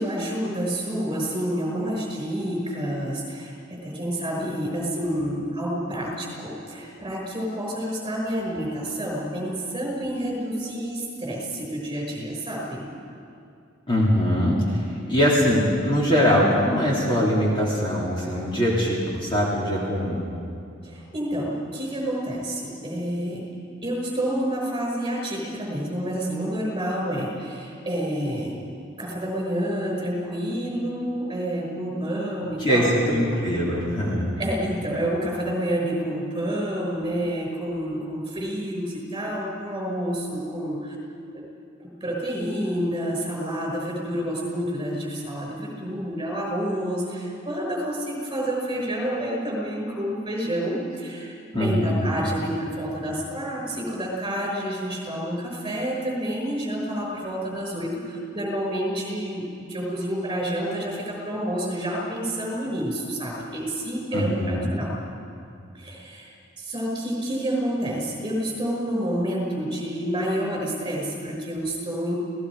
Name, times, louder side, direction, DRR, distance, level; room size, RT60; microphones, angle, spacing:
voice 1, 0.0-12.9 20.8-23.4 23.8-28.6 29.0-33.4 34.4-41.0 41.3-41.4 41.8-64.9 65.7-72.1, equal, 25° right, -1 dB, 5.9 m, -29 dB
voice 2, 13.9-20.2 32.6-34.2 51.5-52.1 64.1-64.7, equal, 25° left, -5 dB, 3.4 m, -22 dB
29.5 x 18.0 x 5.0 m, 2.5 s
head